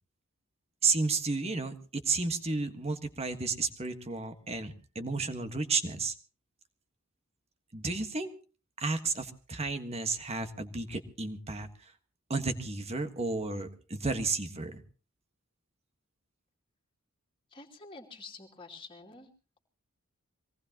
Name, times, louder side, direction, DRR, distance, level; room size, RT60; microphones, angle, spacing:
voice 1, 0.8-6.1 7.7-8.3 8.8-11.9 12.3-14.8, right 3 dB, 30° right, 8 dB, 1.5 m, -32 dB
voice 2, 17.5-19.3, left 3 dB, 25° left, 0 dB, 2.7 m, -48 dB
24.0 x 18.5 x 2.9 m, 0.37 s
head